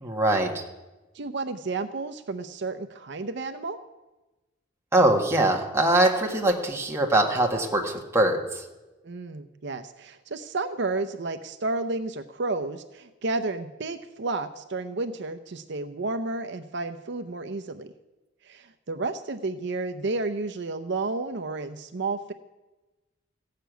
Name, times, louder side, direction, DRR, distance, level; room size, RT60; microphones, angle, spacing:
voice 1, 0.0-0.6 4.9-8.6, right 1 dB, 15° right, 0 dB, 1.6 m, -22 dB
voice 2, 1.1-3.8 9.0-17.9 18.4-22.3, right 3 dB, 60° right, 8 dB, 0.6 m, -31 dB
15.5 x 6.7 x 9.1 m, 1.1 s
head